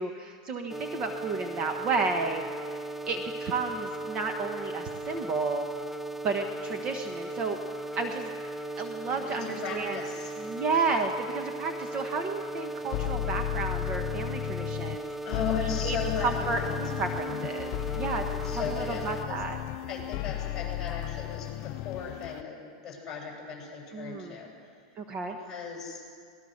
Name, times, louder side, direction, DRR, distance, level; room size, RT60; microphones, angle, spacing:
voice 1, 0.0-2.4 3.1-5.7 6.2-7.6 8.0-8.3 8.8-10.0 10.5-15.1 15.8-16.0 16.2-18.2 18.5-19.6 23.9-24.3 25.0-25.4, right 4 dB, 30° right, 5 dB, 1.2 m, -32 dB
sound 1, 0.7-19.2, right 2 dB, 5° right, 0.6 m, -37 dB
voice 2, 9.1-10.3 15.2-16.8 18.3-19.4 19.9-24.5 25.3-26.0, left 5 dB, 20° left, -2 dB, 7.7 m, -37 dB
sound 2, 10.7-10.9 12.9-15.0 15.3-22.4, left 16 dB, 40° left, 0.4 m, -34 dB
24.5 x 19.5 x 6.6 m, 2.2 s
supercardioid pair, 150°, 3 cm